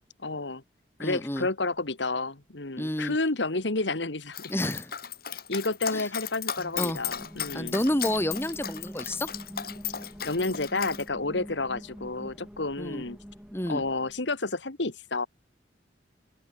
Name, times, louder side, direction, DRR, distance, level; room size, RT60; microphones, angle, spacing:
voice 1, 0.2-0.6 1.0-4.5 5.5-7.8 10.2-13.2 13.7-15.3, left 3 dB, 80° left, 2.0 m, -30 dB
voice 2, 1.0-1.5 2.8-3.2 4.5-4.9 5.9-6.1 6.8-7.0 7.5-9.3 12.8-13.0 13.5-13.8, left 1 dB, 15° left, 2.5 m, -29 dB
Dog, 4.3-11.0, left 9 dB, 55° left, 2.6 m, -36 dB
sound 1, 6.6-14.3, equal, 5° right, 3.5 m, -45 dB
open air
head